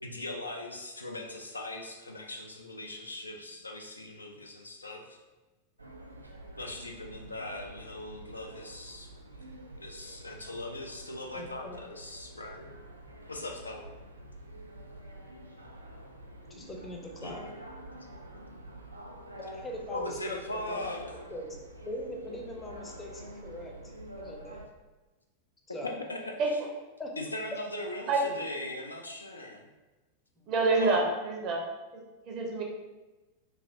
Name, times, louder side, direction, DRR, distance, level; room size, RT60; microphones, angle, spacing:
voice 1, 0.0-5.2 6.6-9.1 9.8-12.7 13.3-13.9 17.2-17.4 19.9-21.0 25.8-26.4 27.2-29.7 30.8-31.1, left 2 dB, 80° left, 2 dB, 0.3 m, -39 dB
sound 1, 5.8-24.7, right 1 dB, 85° right, 0.3 m, -47 dB
voice 2, 11.3-11.8 16.5-17.4 19.4-20.4 20.7-20.8 21.3-21.6 21.9-23.8 24.2-24.6 25.7-25.9 27.0-27.1 30.4-30.5, equal, 15° left, 0 dB, 0.5 m, -41 dB
voice 3, 30.5-31.6 31.9-32.6, right 3 dB, 40° right, 0 dB, 0.6 m, -27 dB
3.2 x 2.5 x 2.6 m, 1.1 s
figure-of-eight pair, 90°, 0 cm